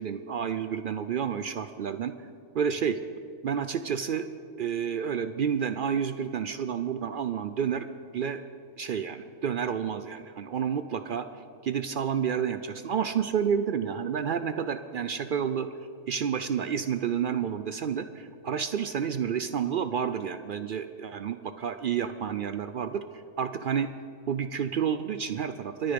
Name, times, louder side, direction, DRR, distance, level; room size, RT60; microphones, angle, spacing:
voice 1, 0.0-2.1 2.5-3.0 3.4-4.3 4.6-7.8 8.1-8.4 8.8-11.3 11.6-15.7 16.1-23.0 23.4-23.9 24.3-25.9, right 7 dB, 70° right, 11 dB, 0.5 m, -30 dB
23.5 x 10.0 x 5.1 m, 2.4 s
omnidirectional pair, 1.4 m